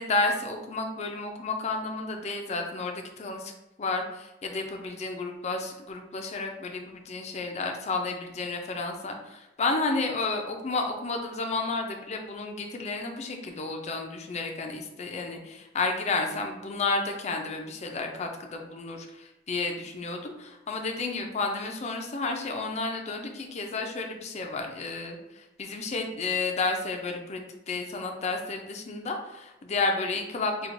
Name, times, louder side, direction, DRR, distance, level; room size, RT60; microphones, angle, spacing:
voice 1, 0.0-3.5 3.8-30.7, left 3 dB, 40° left, 3 dB, 0.4 m, -31 dB
4.4 x 2.3 x 2.6 m, 0.94 s
head